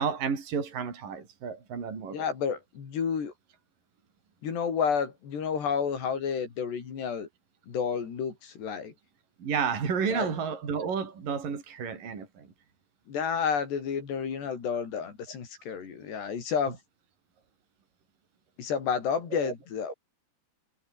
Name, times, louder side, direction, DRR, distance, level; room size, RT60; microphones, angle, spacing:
voice 1, 0.0-2.3 9.4-12.5 19.4-19.5, right 6 dB, 55° right, 6.2 m, -31 dB
voice 2, 2.1-3.3 4.4-7.3 7.7-8.9 10.1-10.3 13.1-16.8 18.6-19.9, left 6 dB, 90° left, 6.6 m, -30 dB
omnidirectional pair, 4.7 m